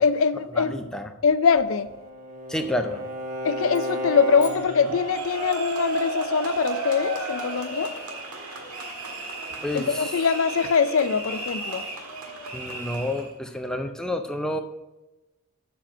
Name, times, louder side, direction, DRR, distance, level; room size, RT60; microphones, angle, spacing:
voice 1, 0.0-0.9 1.2-1.9 3.4-7.9 9.7-11.9, left 6 dB, 65° left, 0.4 m, -23 dB
voice 2, 0.6-1.1 2.5-3.0 9.6-10.1 12.5-14.6, left 1 dB, 5° left, 0.5 m, -29 dB
Bowed string instrument, 1.4-5.0, equal, 35° right, 1.3 m, -33 dB
sound 1, 3.7-5.6, left 9 dB, 35° left, 0.8 m, -49 dB
sound 2, 4.4-13.3, right 2 dB, 90° right, 1.7 m, -33 dB
7.0 x 5.8 x 5.9 m
head